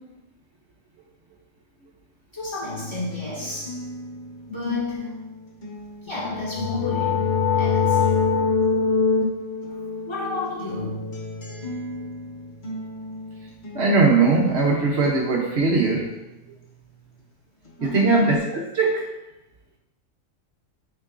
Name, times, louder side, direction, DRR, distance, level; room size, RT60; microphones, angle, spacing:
voice 1, 2.3-3.9 4.5-5.2 6.0-8.5 10.1-11.2 17.8-18.2, left 3 dB, 20° left, -8 dB, 1.9 m, -32 dB
sound 1, 2.6-9.3 9.6-17.3 17.6-18.6, equal, 40° left, 1.1 m, -40 dB
sound 2, 6.2-11.8, left 5 dB, 70° left, 1.0 m, -24 dB
voice 2, 13.7-16.2 17.8-19.1, right 3 dB, 60° right, -1 dB, 1.0 m, -20 dB
8.3 x 4.5 x 2.5 m, 0.95 s
omnidirectional pair, 1.3 m